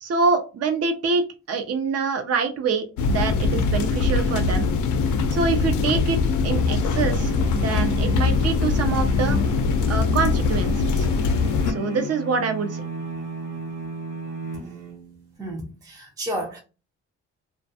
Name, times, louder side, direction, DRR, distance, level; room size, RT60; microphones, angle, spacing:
voice 1, 0.0-4.7 5.3-6.2 6.4-9.4 9.9-11.1 11.7-12.8, right 4 dB, 55° right, 0.7 m, -25 dB
sound 1, 3.0-11.7, left 4 dB, 80° left, 0.5 m, -22 dB
sound 2, 6.9-15.3, equal, 80° right, 1.1 m, -33 dB
voice 2, 15.4-16.6, right 1 dB, 10° right, 0.5 m, -31 dB
2.3 x 2.3 x 2.6 m
cardioid pair, 90°, 30 cm